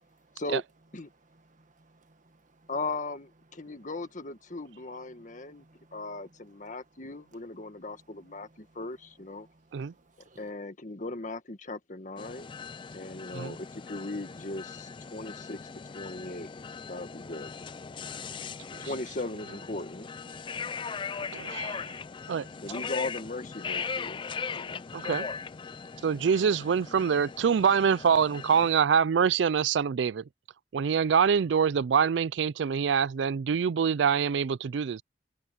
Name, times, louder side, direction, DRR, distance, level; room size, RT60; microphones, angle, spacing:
voice 1, 1.3-2.7 3.6-3.7 5.1-6.7 7.6-8.8 9.4-10.5, right 2 dB, 45° right, 1.8 m, -62 dB
voice 2, 2.7-5.7 5.9-9.5 10.4-12.5 12.9-15.6 15.9-16.5 16.9-17.5 18.8-20.1 22.6-24.8, left 2 dB, 45° left, 1.7 m, -38 dB
sound 1, 12.2-28.7, left 5 dB, 30° left, 0.4 m, -39 dB
voice 3, 21.3-21.8 22.3-22.5 24.9-25.3 26.0-30.2 30.7-35.0, right 7 dB, 80° right, 0.4 m, -25 dB
head